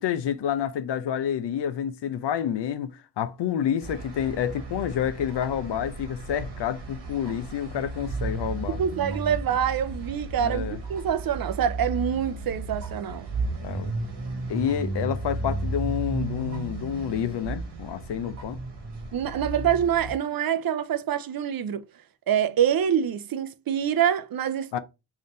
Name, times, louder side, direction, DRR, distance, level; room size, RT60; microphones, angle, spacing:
voice 1, 0.0-8.8 10.4-10.8 13.6-13.9 14.5-18.6 24.7-24.8, left 9 dB, 75° left, 0.6 m, -29 dB
sound 1, 3.8-20.1, right 2 dB, 75° right, 1.4 m, -34 dB
voice 2, 8.7-13.3 19.1-21.8 22.3-24.8, right 9 dB, 55° right, 0.5 m, -26 dB
3.6 x 2.7 x 3.7 m
cardioid pair, 50°, 42 cm